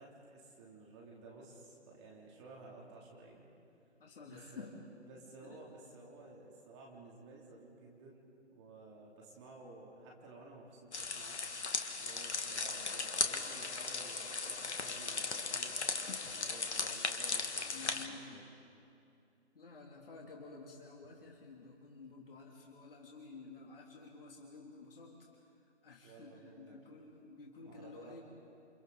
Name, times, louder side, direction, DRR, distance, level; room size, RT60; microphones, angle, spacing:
voice 1, 0.0-3.5 4.2-4.7 5.0-8.2 8.5-11.4 12.0-15.8 16.3-18.4 26.0-26.8 27.6-28.2, right 3 dB, 25° right, -2 dB, 3.0 m, -54 dB
voice 2, 4.0-4.7 5.4-5.6 17.6-18.4 19.5-25.3 25.8-28.2, left 4 dB, 50° left, -1 dB, 2.9 m, -52 dB
sound 1, 10.9-18.1, left 4 dB, 70° left, 1.9 m, -37 dB
28.5 x 28.0 x 4.0 m, 2.6 s
figure-of-eight pair, 145°, 35 cm